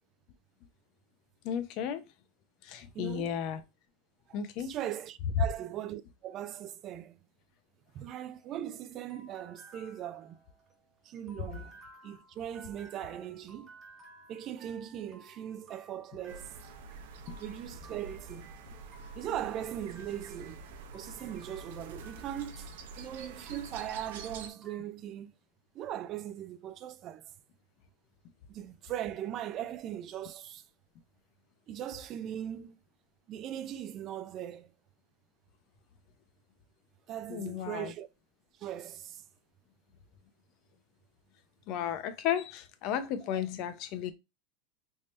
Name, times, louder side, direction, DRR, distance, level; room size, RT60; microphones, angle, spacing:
voice 1, 1.4-2.1 2.6-3.6 4.3-4.7 17.3-17.4 37.3-37.9 41.7-44.1, left 9 dB, 50° left, 0.6 m, -34 dB
voice 2, 2.7-3.4 4.3-7.2 7.9-10.4 11.0-11.7 12.0-13.7 14.3-16.5 17.4-18.5 19.1-20.7 20.9-22.7 23.0-25.3 25.7-27.3 28.5-30.6 31.7-32.8 33.3-34.7 37.1-38.1 38.6-39.2 43.3-43.4, right 11 dB, 35° right, 0.4 m, -39 dB
sound 1, 8.1-24.8, right 2 dB, 20° right, 1.2 m, -57 dB
sound 2, 16.3-24.5, right 3 dB, 75° right, 0.7 m, -47 dB
3.5 x 2.7 x 3.1 m
supercardioid pair, 145°, 0 cm